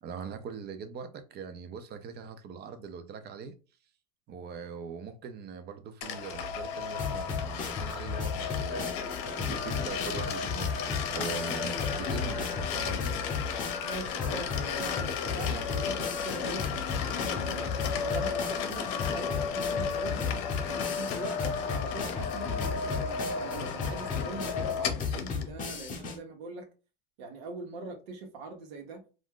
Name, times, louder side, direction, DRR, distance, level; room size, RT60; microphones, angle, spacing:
voice 1, 0.0-3.6 4.3-8.9 9.4-13.2, right 6 dB, 35° right, 0.5 m, -41 dB
sound 1, 6.0-25.5, left 6 dB, 65° left, 0.7 m, -34 dB
sound 2, 7.0-26.2, left 5 dB, 25° left, 0.8 m, -35 dB
voice 2, 13.8-16.6 17.1-17.7 18.0-20.3 20.7-26.7 27.2-29.0, right 3 dB, 75° right, 1.1 m, -42 dB
2.5 x 2.2 x 3.6 m
supercardioid pair, 115°, 31 cm